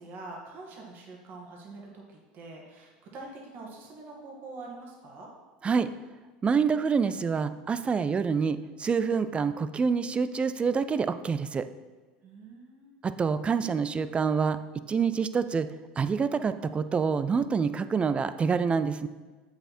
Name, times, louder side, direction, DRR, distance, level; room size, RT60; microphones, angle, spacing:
voice 1, 0.0-5.3 12.2-13.0, right 3 dB, 50° right, -2 dB, 2.1 m, -45 dB
voice 2, 6.4-11.6 13.0-14.6 14.9-15.7 16.0-19.1, right 5 dB, 25° right, 13 dB, 0.5 m, -26 dB
7.9 x 6.6 x 4.4 m, 1.4 s
hypercardioid pair, 90°, 5 cm